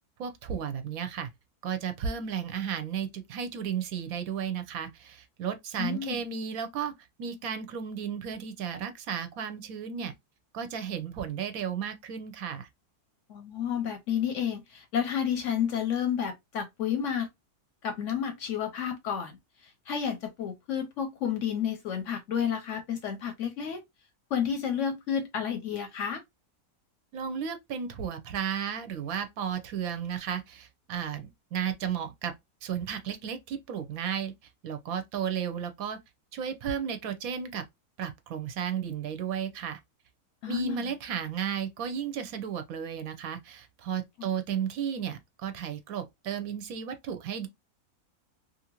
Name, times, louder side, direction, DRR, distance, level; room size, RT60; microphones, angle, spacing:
voice 1, 0.2-1.3 1.6-6.9 7.2-10.1 10.5-12.7 27.1-32.3 32.6-34.3 34.6-36.0 36.3-37.6 38.0-39.8 40.5-47.5, right 8 dB, 70° right, 0.9 m, -34 dB
voice 2, 5.8-6.2 13.3-17.3 17.8-23.8 24.3-26.2 40.4-40.9 44.2-44.3, left 8 dB, 65° left, 0.8 m, -31 dB
2.7 x 2.5 x 2.8 m
omnidirectional pair, 1.6 m